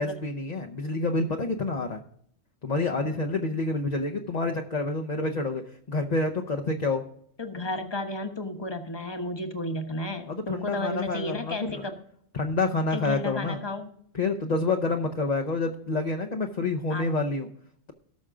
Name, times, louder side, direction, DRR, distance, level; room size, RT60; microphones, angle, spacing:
voice 1, 0.0-2.0 2.6-7.0 10.3-11.9 12.3-13.6 14.1-17.5, left 3 dB, 40° left, 2 dB, 0.9 m, -28 dB
voice 2, 7.4-12.0 12.9-13.9 16.9-17.1, left 1 dB, 25° left, 5 dB, 1.2 m, -33 dB
18.0 x 6.4 x 3.7 m, 0.64 s
omnidirectional pair, 1.1 m